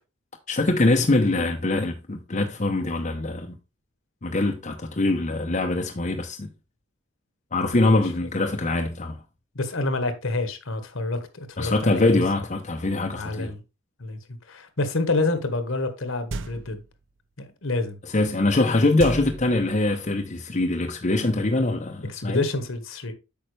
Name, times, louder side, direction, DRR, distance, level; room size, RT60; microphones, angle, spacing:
voice 1, 0.5-3.6 4.2-6.5 7.5-9.2 11.6-13.5 18.0-22.5, left 2 dB, 35° left, 0.8 m, -23 dB
voice 2, 9.5-12.2 13.1-13.6 14.0-14.2 14.5-16.8 17.6-18.0 22.2-23.1, left 2 dB, 65° left, 1.3 m, -28 dB
sound 1, 16.3-16.9 19.0-20.0, right 3 dB, 60° right, 0.6 m, -34 dB
8.7 x 5.7 x 3.3 m
head